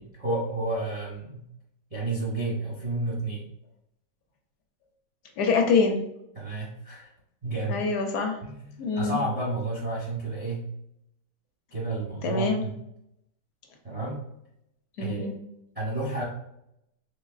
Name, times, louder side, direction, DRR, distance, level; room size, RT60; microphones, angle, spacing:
voice 1, 0.2-1.4 1.9-3.5 6.4-7.1 7.4-7.8 8.4-10.7 11.7-12.8 13.8-14.2 15.0-15.3 15.7-16.2, right 2 dB, 35° right, -5 dB, 0.6 m, -31 dB
voice 2, 5.4-6.0 7.7-8.4 8.8-9.2 12.2-12.6 15.0-15.4, left 4 dB, 70° left, 3 dB, 1.1 m, -25 dB
4.0 x 3.0 x 2.4 m, 0.77 s
omnidirectional pair, 1.9 m